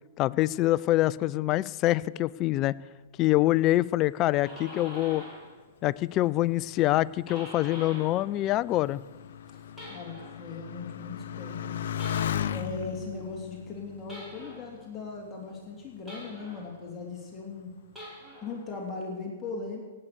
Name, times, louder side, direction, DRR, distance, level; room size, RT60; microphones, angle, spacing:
voice 1, 0.2-2.7 3.2-5.2 5.8-9.0, left 16 dB, 30° left, 19 dB, 0.4 m, -25 dB
sound 1, 4.1-5.6 5.9-8.3 8.6-10.5 11.9-12.7 14.1-14.7 16.1-16.8 17.8-18.6, equal, 5° right, 5.4 m, -45 dB
Motorcycle, 6.3-15.3 16.1-16.6, left 9 dB, 65° left, 0.8 m, -37 dB
voice 2, 9.9-11.8 12.5-17.7 18.4-19.8, left 4 dB, 15° left, -2 dB, 3.3 m, -39 dB
17.5 x 8.9 x 6.9 m, 1.3 s
hypercardioid pair, 130°, 0 cm